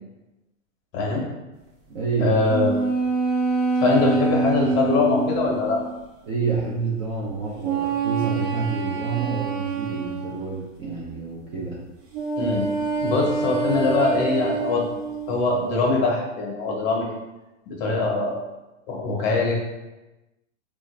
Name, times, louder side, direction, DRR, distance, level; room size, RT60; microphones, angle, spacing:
voice 1, 0.9-1.2 2.2-2.8 3.8-5.8 12.4-12.7 13.0-14.8 15.3-17.1 17.7-18.4 18.9-19.5, left 3 dB, 35° left, -1 dB, 1.0 m, -22 dB
voice 2, 1.9-2.4 6.2-11.8, right 4 dB, 25° right, -6 dB, 0.4 m, -28 dB
sound 1, 2.5-6.0 7.6-10.5 12.1-15.4, right 4 dB, 60° right, 1.0 m, -26 dB
3.6 x 2.4 x 3.1 m, 1.0 s
hypercardioid pair, 140°, 38 cm